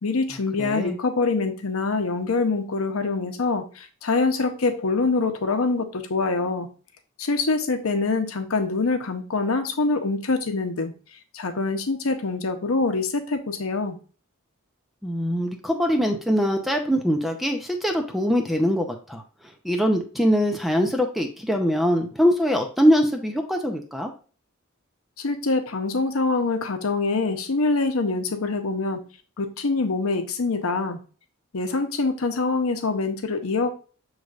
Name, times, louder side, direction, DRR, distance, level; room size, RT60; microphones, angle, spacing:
voice 1, 0.0-6.7 7.2-10.9 11.3-14.0 25.2-29.0 29.4-31.0 31.5-33.7, left 3 dB, 90° left, 7 dB, 0.7 m, -25 dB
voice 2, 0.6-1.0 15.0-19.2 19.6-24.1, equal, ahead, 3 dB, 0.5 m, -22 dB
6.6 x 3.2 x 2.4 m, 0.38 s
head